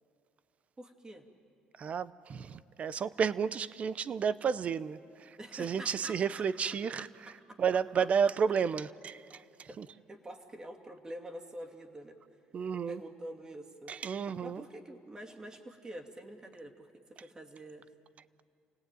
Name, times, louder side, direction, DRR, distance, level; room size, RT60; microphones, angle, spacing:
voice 1, 0.8-1.2 5.4-6.5 7.0-8.1 9.7-12.4 12.9-13.9 14.4-17.9, right 1 dB, 25° right, 2.6 m, -47 dB
voice 2, 1.8-7.1 7.6-9.9 12.5-13.0 13.9-14.6, right 6 dB, 45° right, 0.7 m, -32 dB
28.5 x 18.0 x 9.1 m
cardioid pair, 90°, 3 cm